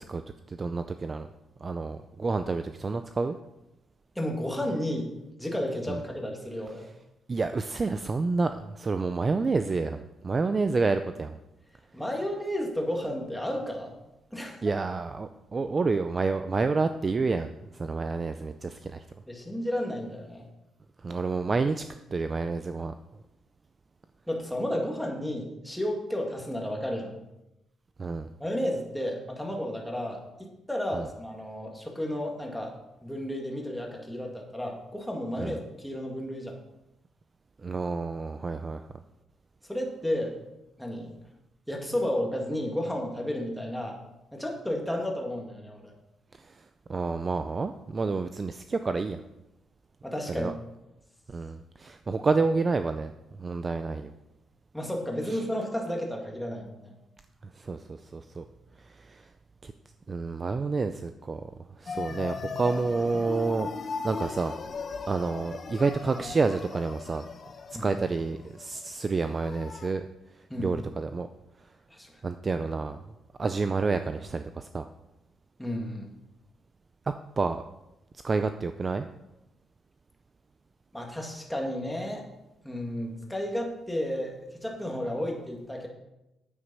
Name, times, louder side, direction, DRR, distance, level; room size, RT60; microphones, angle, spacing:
voice 1, 0.5-1.3 1.6-3.4 5.9-6.0 7.3-11.4 14.6-19.0 21.0-21.8 22.1-22.9 28.0-28.3 30.9-31.1 35.4-35.6 37.6-38.8 46.3-49.2 50.3-50.5 51.3-53.1 53.4-54.1 55.3-55.4 57.6-58.4 58.8-59.3 59.6-59.7 60.1-61.4 61.8-63.7 64.0-64.5 65.1-67.2 67.8-70.1 70.6-71.3 72.2-73.0 73.4-74.9 77.1-77.6 78.2-79.1, right 4 dB, 25° right, 9 dB, 0.4 m, -29 dB
voice 2, 4.2-5.1 5.4-6.9 11.9-13.9 14.3-14.6 19.3-20.4 24.3-27.2 28.4-32.8 33.0-36.6 39.7-40.4 40.8-41.1 41.7-44.0 44.3-45.9 50.0-50.5 52.1-52.2 54.7-56.9 67.7-68.0 70.5-70.8 71.9-72.1 75.6-76.1 80.9-82.2 82.6-85.9, left 1 dB, 5° left, 0 dB, 2.0 m, -32 dB
sound 1, 61.9-69.9, left 4 dB, 35° left, 0.9 m, -38 dB
9.7 x 9.0 x 5.5 m, 0.92 s
cardioid pair, 150°, 0 cm